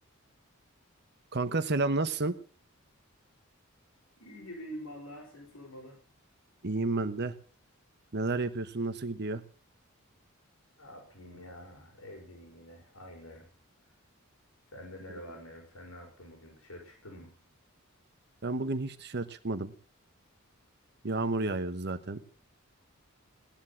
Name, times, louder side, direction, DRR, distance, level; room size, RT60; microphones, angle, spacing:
voice 1, 1.3-2.3 6.6-7.3 8.1-9.4 18.4-19.7 21.0-22.2, right 3 dB, 50° right, 10 dB, 1.1 m, -31 dB
voice 2, 4.2-6.0 10.8-13.5 13.8-13.9 14.7-17.3, equal, 75° left, 1 dB, 6.1 m, -47 dB
18.0 x 10.5 x 7.3 m, 0.43 s
head